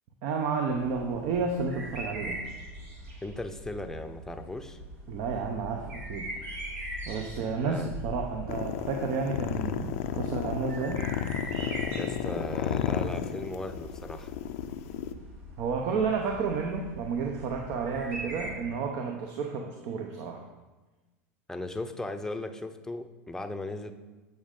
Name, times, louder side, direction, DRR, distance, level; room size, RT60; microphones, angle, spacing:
voice 1, 0.2-2.4 5.1-6.3 7.1-11.1 15.6-20.4, right 5 dB, 55° right, 3 dB, 0.8 m, -31 dB
sound 1, 0.7-18.5, equal, 75° right, 1.8 m, -42 dB
voice 2, 3.2-4.8 7.6-7.9 12.0-14.3 21.5-23.9, left 2 dB, 5° left, 7 dB, 0.6 m, -37 dB
sound 2, 8.5-15.1, left 10 dB, 65° left, 0.5 m, -32 dB
8.4 x 5.1 x 3.8 m, 1.2 s
hypercardioid pair, 95°, 8 cm